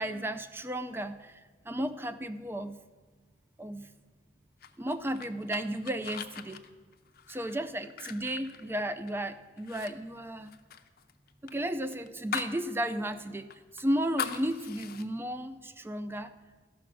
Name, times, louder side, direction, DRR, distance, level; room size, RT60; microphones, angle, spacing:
voice 1, 0.0-1.4 1.7-2.8 3.6-3.9 4.8-6.6 7.3-10.5 11.4-16.3, right 1 dB, 15° right, 11 dB, 0.4 m, -34 dB
sound 1, 4.6-9.2 9.6-9.9 10.2-12.6 13.0-13.1 13.5-15.1, left 7 dB, 55° left, 0.6 m, -40 dB
13.5 x 5.8 x 6.2 m, 1.4 s
head